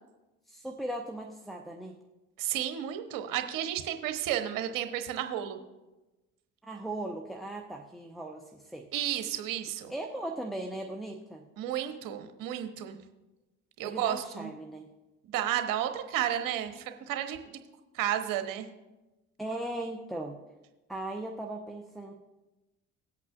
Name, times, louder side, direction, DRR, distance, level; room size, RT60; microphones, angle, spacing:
voice 1, 0.5-1.9 6.6-8.9 9.9-11.4 13.8-14.9 19.4-20.4 20.9-22.1, right 1 dB, ahead, 1 dB, 0.9 m, -38 dB
voice 2, 2.4-5.6 8.9-9.9 11.6-13.0 13.8-14.5 15.3-17.6 17.9-18.7, right 11 dB, 55° right, 8 dB, 1.0 m, -32 dB
18.5 x 8.3 x 2.5 m, 1.1 s
figure-of-eight pair, 55°, 39 cm